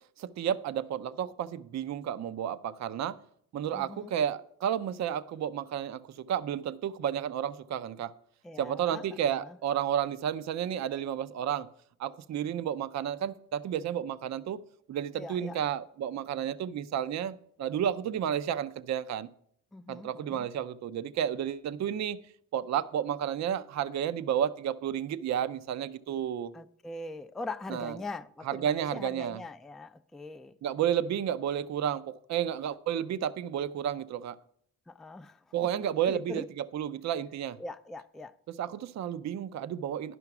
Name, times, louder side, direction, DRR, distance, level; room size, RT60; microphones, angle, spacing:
voice 1, 0.2-3.2 3.5-8.1 8.6-11.7 12.0-14.6 14.9-19.3 19.9-22.2 22.5-26.5 27.7-28.0 28.5-29.4 30.6-34.4 35.5-37.6 38.5-40.2, right 9 dB, 55° right, 0.5 m, -31 dB
voice 2, 3.7-4.1 8.4-9.6 15.1-15.6 19.7-20.5 26.5-30.6 34.9-35.4 36.1-36.5 37.6-38.4, left 2 dB, ahead, 0.3 m, -42 dB
11.0 x 5.8 x 5.8 m
cardioid pair, 105°, 34 cm